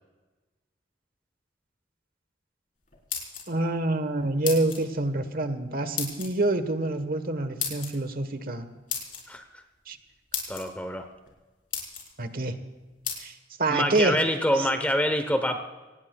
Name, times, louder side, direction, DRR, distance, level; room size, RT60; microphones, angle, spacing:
sound 1, 2.9-3.7 4.4-4.8 6.0-6.3 7.6-7.9 8.9-9.2 9.9-10.0 10.3-10.6 11.3-11.4 11.7-12.1 13.0-13.2, left 7 dB, 50° left, 4.3 m, -32 dB
voice 1, 3.5-8.7 9.9-10.0 12.2-12.6 13.2-13.3 13.6-14.2, right 2 dB, 55° right, 9 dB, 1.2 m, -27 dB
voice 2, 9.3-9.6 10.5-11.1 13.7-15.6, equal, 10° left, 7 dB, 0.9 m, -26 dB
25.5 x 19.0 x 2.3 m, 1.2 s
head